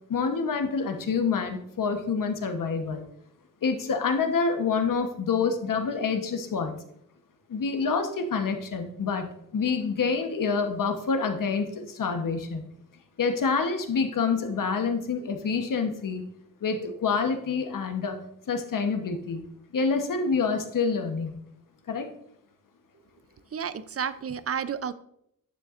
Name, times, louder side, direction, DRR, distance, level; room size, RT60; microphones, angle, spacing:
voice 1, 0.1-3.0 3.6-6.7 7.5-12.6 13.2-16.3 16.6-18.2 18.5-19.4 19.7-21.4 21.9-22.1, left 5 dB, 70° left, 6 dB, 1.1 m, -27 dB
voice 2, 23.5-24.9, right 7 dB, 45° right, 14 dB, 0.5 m, -31 dB
9.9 x 6.9 x 2.5 m, 0.73 s
wide cardioid pair, 90°, 33 cm